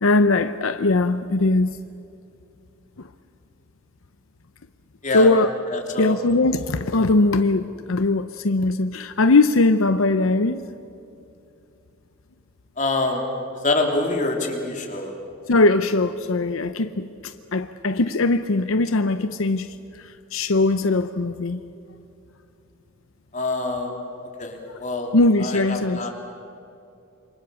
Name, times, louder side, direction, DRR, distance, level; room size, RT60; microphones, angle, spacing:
voice 1, 0.0-1.8 3.0-3.1 5.1-5.5 6.0-10.6 15.5-21.6 25.1-26.1, left 2 dB, 85° left, 10 dB, 0.8 m, -20 dB
voice 2, 5.7-6.2 12.8-13.3 13.6-15.1 23.3-24.0 24.4-25.1 25.4-26.1, left 2 dB, 40° left, 1 dB, 3.5 m, -25 dB
27.5 x 24.5 x 7.1 m, 2.6 s
head